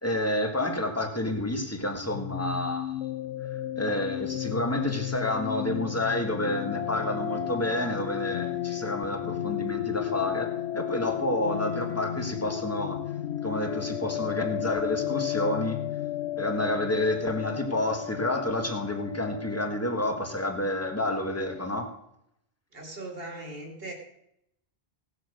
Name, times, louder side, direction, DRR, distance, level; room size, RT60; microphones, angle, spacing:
voice 1, 0.0-3.0 3.7-13.0 13.4-15.8 16.4-21.9, left 1 dB, 15° left, 4 dB, 1.5 m, -29 dB
sound 1, 2.1-21.6, left 12 dB, 75° left, 0.9 m, -34 dB
voice 2, 22.7-23.9, right 2 dB, 55° right, 2 dB, 2.5 m, -39 dB
17.5 x 6.7 x 6.4 m, 0.79 s
omnidirectional pair, 1.2 m